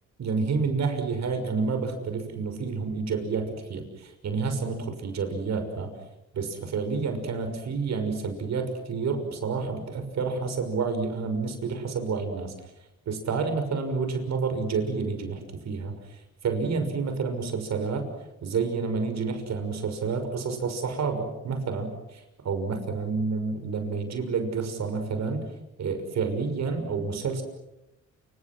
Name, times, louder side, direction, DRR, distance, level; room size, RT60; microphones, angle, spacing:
voice 1, 0.2-5.9 6.3-12.5 13.1-18.1 18.4-25.5 25.8-27.4, right 4 dB, 60° right, 7 dB, 6.2 m, -29 dB
28.5 x 27.0 x 6.2 m, 0.93 s
cardioid pair, 90°, 30 cm